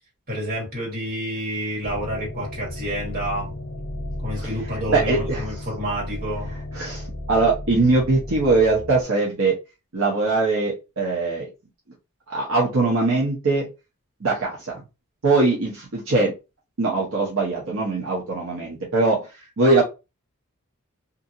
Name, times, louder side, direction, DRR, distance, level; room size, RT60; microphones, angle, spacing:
voice 1, 0.3-3.5 4.2-6.5, equal, 45° right, 1.7 m, -29 dB
sound 1, 1.8-9.0, left 1 dB, 35° left, 1.1 m, -34 dB
voice 2, 4.3-5.4 6.7-9.6 9.9-11.5 12.3-13.7 14.2-14.8 15.2-16.3 16.8-19.8, right 3 dB, 70° right, 0.8 m, -22 dB
2.7 x 2.7 x 2.5 m
head